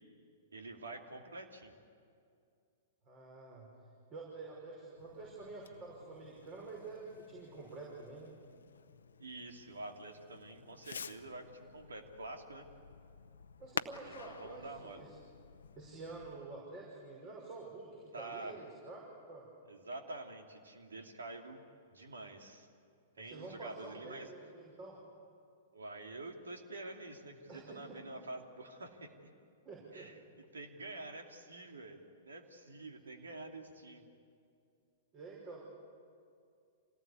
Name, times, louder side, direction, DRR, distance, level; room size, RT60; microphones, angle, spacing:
voice 1, 0.5-1.7 9.2-12.6 14.0-15.0 18.1-18.6 19.7-21.6 21.9-22.7 23.2-24.3 25.7-29.1 29.9-34.1, right 2 dB, 85° right, 4 dB, 2.7 m, -47 dB
voice 2, 3.0-3.7 4.1-8.3 13.6-15.2 15.8-19.5 23.2-25.0 27.5-28.0 29.6-30.1 35.1-35.6, right 3 dB, 40° right, -2 dB, 5.8 m, -48 dB
Fireworks, 5.0-16.3, left 6 dB, 80° left, 0.8 m, -50 dB
26.5 x 18.5 x 8.4 m, 2.4 s
hypercardioid pair, 110°, 0 cm